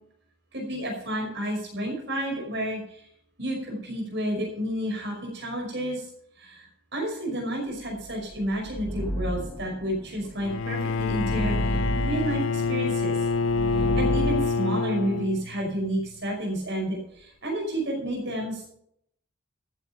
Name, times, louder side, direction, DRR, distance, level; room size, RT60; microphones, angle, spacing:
voice 1, 0.5-3.0 3.4-6.1 6.4-13.2 13.8-18.7, right 1 dB, 55° right, 1 dB, 5.4 m, -31 dB
sound 1, 8.0-14.4, equal, 10° left, 1.4 m, -32 dB
Bowed string instrument, 10.4-15.7, left 4 dB, 65° left, 0.5 m, -26 dB
13.5 x 9.1 x 5.9 m, 0.72 s
head